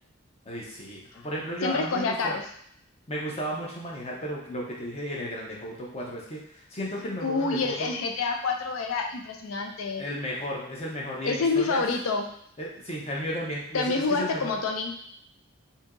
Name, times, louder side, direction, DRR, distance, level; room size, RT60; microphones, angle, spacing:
voice 1, 0.5-2.3 3.1-7.9 10.0-11.8 12.6-14.5, equal, 30° left, -3 dB, 0.8 m, -34 dB
voice 2, 1.6-2.5 7.2-10.0 11.2-12.3 13.7-14.9, left 4 dB, 75° left, 3 dB, 0.5 m, -27 dB
2.8 x 2.7 x 3.6 m, 0.69 s
head